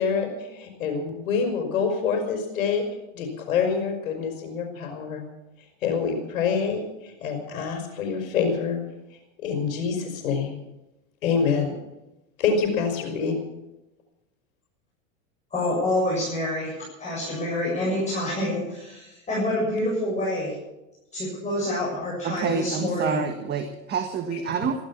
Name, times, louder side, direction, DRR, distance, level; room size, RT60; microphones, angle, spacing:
voice 1, 0.0-2.8 3.1-5.2 5.8-8.8 9.4-10.6 11.2-11.7 12.4-13.4 24.3-24.6, left 6 dB, 80° left, 1 dB, 4.8 m, -26 dB
voice 2, 15.5-20.5 21.1-23.3, left 1 dB, 15° left, -5 dB, 7.5 m, -27 dB
voice 3, 22.2-24.9, right 6 dB, 25° right, 6 dB, 1.5 m, -28 dB
15.5 x 13.0 x 7.2 m, 0.95 s
supercardioid pair, 125°, 40 cm